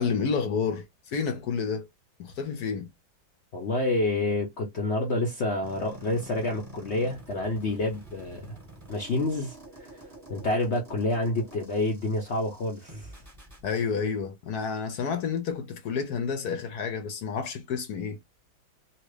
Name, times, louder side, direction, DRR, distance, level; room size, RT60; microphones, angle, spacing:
voice 1, 0.0-1.9 2.2-2.9 13.6-18.2, left 6 dB, 65° left, 1.0 m, -30 dB
voice 2, 3.5-8.6 8.9-9.5 9.8-9.9 10.3-13.1, left 2 dB, 80° left, 0.6 m, -28 dB
sound 1, 5.6-13.6, right 1 dB, 10° right, 0.9 m, -47 dB
2.9 x 2.8 x 3.1 m
omnidirectional pair, 2.2 m